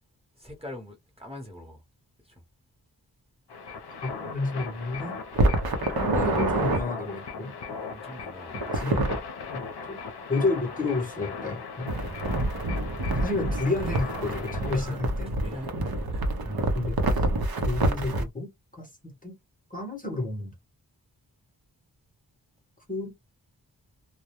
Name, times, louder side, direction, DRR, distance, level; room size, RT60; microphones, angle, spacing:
voice 1, 0.4-1.8 2.2-2.4 7.7-9.1 14.7-15.0 15.3-16.4, left 1 dB, 15° right, 0.9 m, -44 dB
sound 1, 3.5-14.8, left 5 dB, 70° left, 0.7 m, -38 dB
voice 2, 4.0-5.2 6.1-7.5 8.7-9.2 9.5-10.0 10.3-11.9 13.1-15.4 16.4-17.2 17.6-19.4 19.7-20.5 22.9-23.1, left 2 dB, 20° left, 0.8 m, -31 dB
sound 2, 5.3-6.8 8.5-9.2 11.9-18.3, right 2 dB, 60° right, 0.7 m, -27 dB
2.2 x 2.1 x 2.8 m
wide cardioid pair, 65°, 42 cm